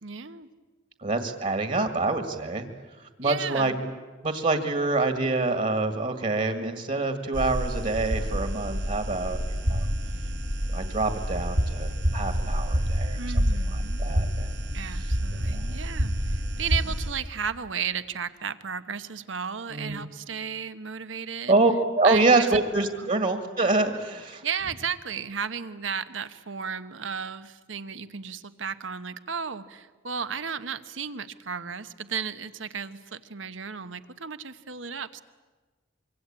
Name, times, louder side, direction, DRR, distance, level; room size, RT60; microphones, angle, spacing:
voice 1, 0.0-0.5 3.2-3.8 13.2-14.0 14.7-21.6 22.0-22.6 23.0-23.1 24.4-35.2, right 6 dB, 85° right, 12 dB, 1.1 m, -34 dB
voice 2, 1.0-2.7 3.0-3.9 4.2-9.9 10.7-13.2 13.7-14.5 14.9-15.1 15.5-15.8 19.7-20.1 21.5-24.4, right 3 dB, 45° right, 7 dB, 1.9 m, -26 dB
sound 1, 7.3-17.1, equal, 65° right, 4.4 m, -28 dB
25.5 x 24.0 x 8.8 m, 1.3 s
head